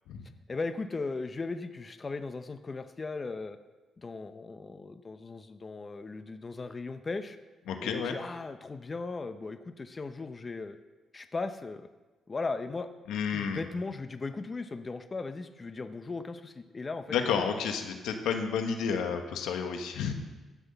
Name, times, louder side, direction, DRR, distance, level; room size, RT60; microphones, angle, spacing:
voice 1, 0.5-3.6 4.0-7.4 7.8-10.8 11.1-11.9 12.3-12.9 13.3-17.2, left 3 dB, 35° left, 9 dB, 0.7 m, -37 dB
voice 2, 7.7-8.1 13.1-13.6 17.1-20.1, left 6 dB, 90° left, 5 dB, 1.3 m, -31 dB
15.5 x 6.2 x 6.9 m, 1.2 s
cardioid pair, 75°, 0 cm